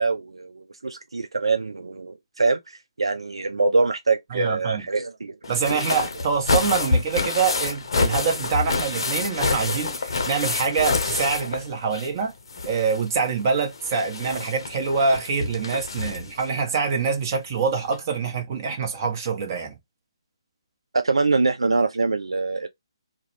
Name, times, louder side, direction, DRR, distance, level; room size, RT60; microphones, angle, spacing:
voice 1, 0.0-5.4 21.0-22.7, right 3 dB, 75° right, 0.3 m, -24 dB
voice 2, 4.3-4.8 5.5-12.3 12.6-19.8, right 5 dB, 35° right, 0.8 m, -25 dB
sound 1, 5.4-12.2 12.5-16.4 17.5-17.6 17.9-18.0, left 3 dB, 60° left, 0.6 m, -27 dB
2.3 x 2.1 x 3.0 m
figure-of-eight pair, 140°, 3 cm